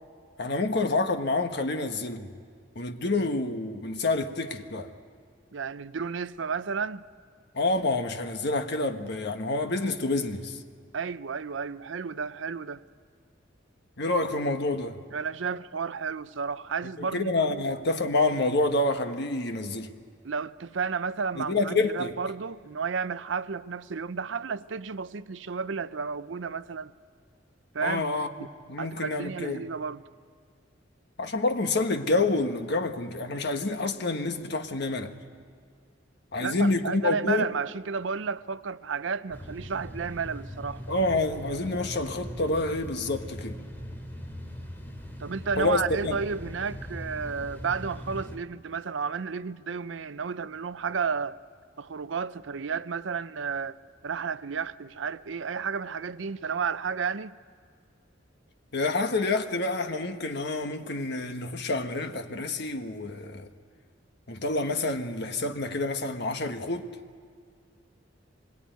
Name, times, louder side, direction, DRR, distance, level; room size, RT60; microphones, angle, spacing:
voice 1, 0.4-2.3 2.7-4.9 7.5-10.6 14.0-15.0 17.0-19.9 21.4-22.1 27.8-28.3 28.7-29.7 31.2-35.1 36.3-37.5 40.9-43.6 45.6-46.2 58.7-63.5 64.3-66.9, left 2 dB, 60° left, 1.4 m, -28 dB
voice 2, 5.5-7.0 10.9-12.8 15.1-17.6 20.2-26.9 27.7-28.0 28.4-28.5 28.8-30.0 36.4-40.8 45.2-51.4 51.8-53.8 54.0-57.4, right 5 dB, 70° right, 0.6 m, -32 dB
sound 1, 39.3-48.4, equal, 10° left, 2.6 m, -40 dB
25.0 x 22.0 x 9.3 m
head